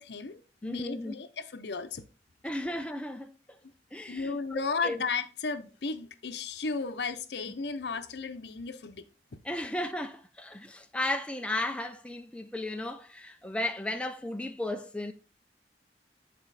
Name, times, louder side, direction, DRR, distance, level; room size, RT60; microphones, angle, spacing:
voice 1, 0.0-2.0 4.1-9.0, left 4 dB, 75° left, 0.7 m, -34 dB
voice 2, 0.6-1.1 2.4-3.3 3.9-5.1 7.5-7.6 9.4-15.1, left 1 dB, 5° left, 0.4 m, -35 dB
8.5 x 4.4 x 4.0 m
head